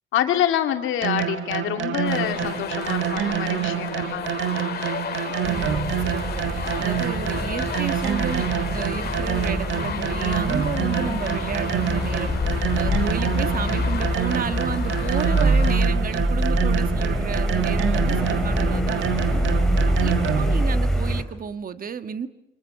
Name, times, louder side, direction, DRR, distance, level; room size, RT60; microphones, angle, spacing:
voice 1, 0.1-4.5, left 11 dB, 85° left, 5 dB, 2.6 m, -26 dB
sound 1, 1.0-20.7, right 10 dB, 75° right, 1.7 m, -27 dB
sound 2, 2.0-15.8, left 7 dB, 55° left, 2.0 m, -33 dB
voice 2, 5.3-8.5 8.7-12.3 12.7-19.4 20.0-22.3, right 6 dB, 45° right, 10 dB, 1.5 m, -32 dB
sound 3, 5.4-21.2, equal, ahead, 4.6 m, -25 dB
26.5 x 25.0 x 7.5 m, 0.85 s
cardioid pair, 90°, 20 cm